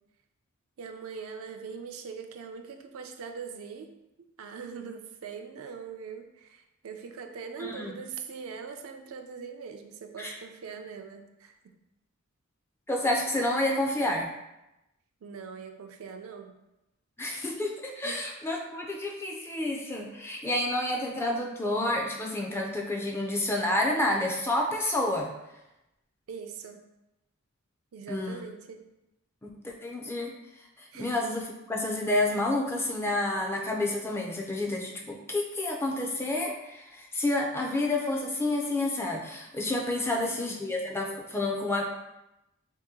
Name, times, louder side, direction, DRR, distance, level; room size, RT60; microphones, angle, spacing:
voice 1, 0.8-3.9 4.4-11.7 15.2-16.6 18.0-18.2 26.3-26.8 27.9-28.8 30.9-31.1 40.0-40.5, right 6 dB, 70° right, 6 dB, 0.4 m, -42 dB
voice 2, 7.6-7.9 10.2-10.3 12.9-14.3 17.2-25.3 28.1-28.4 29.4-30.3 30.8-41.8, left 1 dB, 10° left, 0 dB, 0.3 m, -29 dB
2.9 x 2.8 x 3.6 m, 0.93 s
head